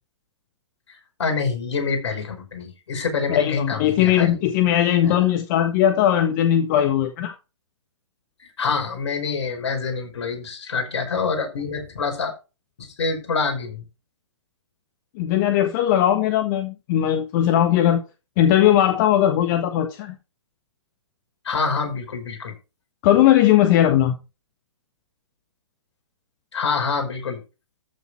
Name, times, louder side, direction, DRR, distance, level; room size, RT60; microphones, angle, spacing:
voice 1, 1.2-4.4 5.0-5.1 8.4-12.3 12.8-13.9 21.4-22.5 26.5-27.4, left 4 dB, 65° left, 5.5 m, -26 dB
voice 2, 3.3-7.3 15.1-18.0 18.4-20.2 23.0-24.1, left 11 dB, 40° left, 1.5 m, -19 dB
14.0 x 7.2 x 4.4 m
hypercardioid pair, 125°, 15 cm